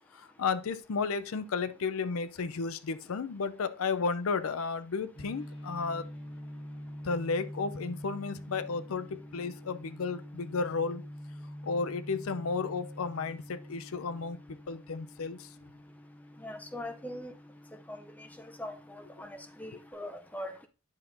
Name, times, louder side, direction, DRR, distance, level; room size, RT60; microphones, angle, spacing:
voice 1, 0.1-6.1 7.0-11.0 11.6-14.4 14.7-15.5, left 4 dB, 85° left, 0.5 m, -33 dB
sound 1, 5.1-19.9, equal, 30° left, 4.8 m, -46 dB
voice 2, 16.4-17.3 17.9-18.0 18.6-20.7, left 1 dB, 5° left, 0.5 m, -41 dB
9.8 x 5.9 x 2.6 m
head